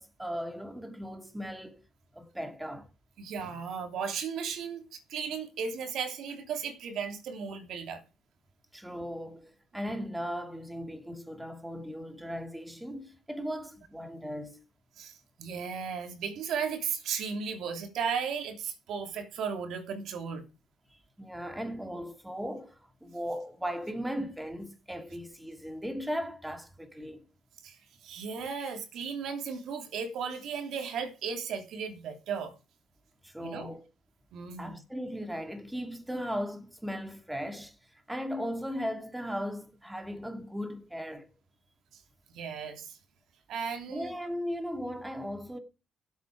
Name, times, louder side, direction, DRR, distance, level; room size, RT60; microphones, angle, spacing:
voice 1, 0.0-1.8 2.1-2.9 8.7-14.6 20.9-27.2 33.2-33.8 34.6-37.8 38.1-41.3 43.9-45.6, equal, 5° right, 2.6 m, -37 dB
voice 2, 3.2-8.0 15.0-20.4 27.6-32.5 33.4-33.7 34.3-34.8 42.3-43.0 43.5-44.1, right 6 dB, 75° right, 3.1 m, -35 dB
16.5 x 8.4 x 4.8 m
cardioid pair, 90°, 0 cm